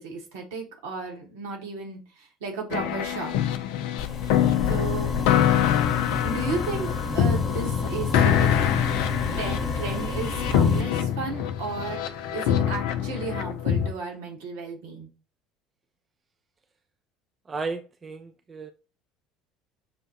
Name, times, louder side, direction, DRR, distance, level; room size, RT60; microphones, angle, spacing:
voice 1, 0.0-3.3 4.6-5.1 6.2-8.5 9.4-15.1, right 4 dB, 70° right, 1.1 m, -34 dB
sound 1, 2.7-13.9, left 9 dB, 65° left, 0.4 m, -25 dB
sound 2, 4.0-10.8, left 4 dB, 35° left, 0.9 m, -30 dB
voice 2, 17.5-18.7, right 4 dB, 30° right, 0.4 m, -34 dB
6.2 x 2.2 x 2.7 m
figure-of-eight pair, 65°, 0 cm